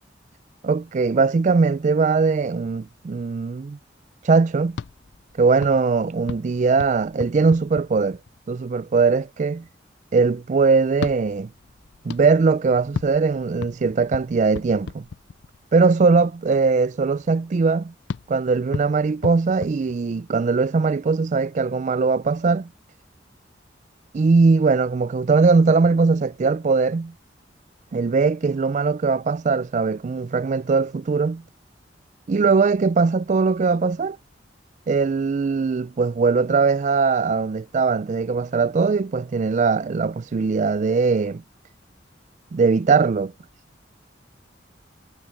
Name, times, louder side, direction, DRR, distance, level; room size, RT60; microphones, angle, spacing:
voice 1, 0.6-3.8 4.2-4.8 5.4-8.2 8.5-9.6 10.1-11.5 12.0-15.0 15.7-17.9 18.3-22.7 24.1-27.1 27.9-31.4 32.3-34.2 34.9-41.4 42.5-43.3, right 4 dB, 40° right, 0.3 m, -20 dB
sound 1, 4.7-8.5 10.9-15.7 18.1-20.5, left 5 dB, 65° left, 0.4 m, -36 dB
head